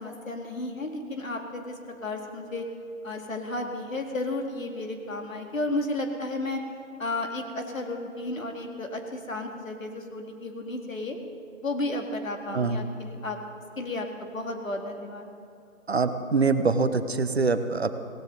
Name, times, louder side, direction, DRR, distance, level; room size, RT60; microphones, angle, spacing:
voice 1, 0.0-2.7 3.0-6.6 7.0-11.2 11.6-13.4 13.8-15.3, left 2 dB, 70° left, 3 dB, 2.2 m, -33 dB
voice 2, 15.9-17.9, right 4 dB, 50° right, 10 dB, 0.8 m, -24 dB
18.0 x 17.0 x 4.0 m, 2.5 s
figure-of-eight pair, 165°, 42 cm